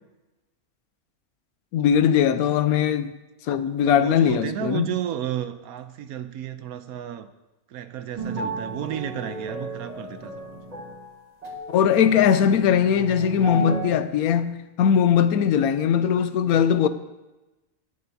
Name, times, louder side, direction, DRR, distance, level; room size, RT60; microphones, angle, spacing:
voice 1, 1.7-3.1 3.5-4.9 11.7-16.9, left 8 dB, 85° left, 1.1 m, -20 dB
voice 2, 3.8-7.3 7.7-10.4, right 10 dB, 85° right, 1.1 m, -32 dB
sound 1, 8.2-13.8, right 1 dB, 30° right, 1.6 m, -33 dB
18.0 x 6.7 x 2.7 m
omnidirectional pair, 1.5 m